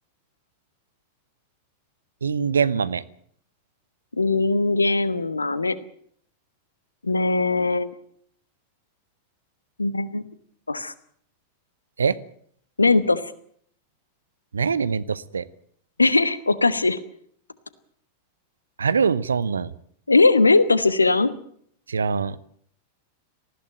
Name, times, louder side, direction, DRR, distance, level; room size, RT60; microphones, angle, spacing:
voice 1, 2.2-3.0 12.0-12.2 14.5-15.5 18.8-19.7 21.9-22.4, right 6 dB, 70° right, 17 dB, 0.9 m, -23 dB
voice 2, 4.2-5.8 7.0-7.9 9.8-10.2 10.7-10.9 12.8-13.3 16.0-17.0 20.1-21.3, left 3 dB, 80° left, 16 dB, 1.3 m, -20 dB
19.5 x 15.0 x 9.1 m, 0.63 s
figure-of-eight pair, 90°, 0 cm